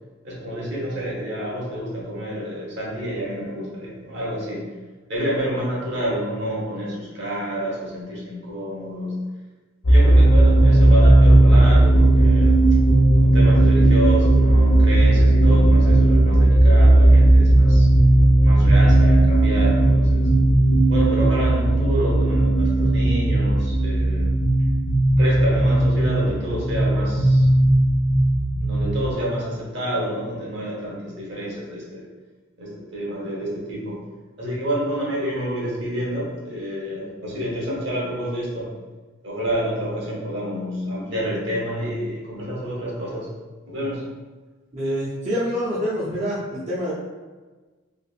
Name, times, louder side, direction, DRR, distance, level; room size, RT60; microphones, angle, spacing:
voice 1, 0.2-4.7 5.1-9.2 9.9-12.6 13.2-17.9 18.4-20.3 20.9-24.3 25.2-27.5 28.6-32.0 32.6-34.0 34.4-38.7 39.2-43.3 43.6-44.1, equal, 65° right, -5 dB, 1.2 m, -28 dB
sound 1, 9.8-29.1, right 1 dB, 85° left, 0.7 m, -16 dB
voice 2, 44.7-46.9, equal, 35° right, -9 dB, 0.6 m, -26 dB
3.3 x 3.0 x 2.4 m, 1.3 s
head